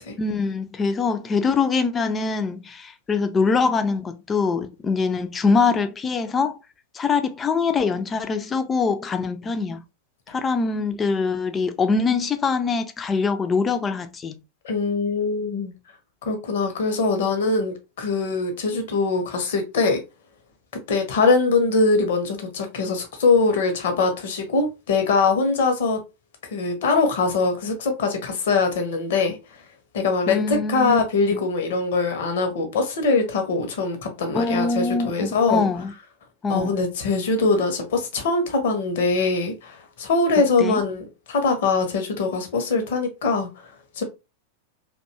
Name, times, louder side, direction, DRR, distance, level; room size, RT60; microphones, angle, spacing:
voice 1, 0.2-6.6 6.9-9.8 10.3-14.4 30.3-31.0 31.3-31.4 34.3-35.9 36.4-36.8 40.6-40.8, left 4 dB, 20° left, 0.3 m, -23 dB
voice 2, 14.6-15.7 16.2-20.0 20.9-26.0 26.5-29.4 29.9-35.7 36.5-43.5 44.0-44.1, left 4 dB, 55° left, 0.6 m, -22 dB
2.6 x 2.2 x 2.6 m
figure-of-eight pair, 90°, 0 cm